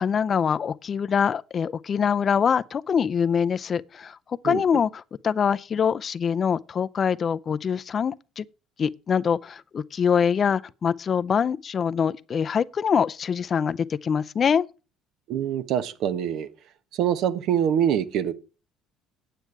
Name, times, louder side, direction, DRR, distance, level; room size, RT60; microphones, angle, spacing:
voice 1, 0.0-8.4 8.8-14.6, left 7 dB, 40° left, 0.5 m, -24 dB
voice 2, 15.3-16.5 16.9-18.3, right 9 dB, 70° right, 1.1 m, -24 dB
9.2 x 9.0 x 4.7 m
cardioid pair, 100°, 0 cm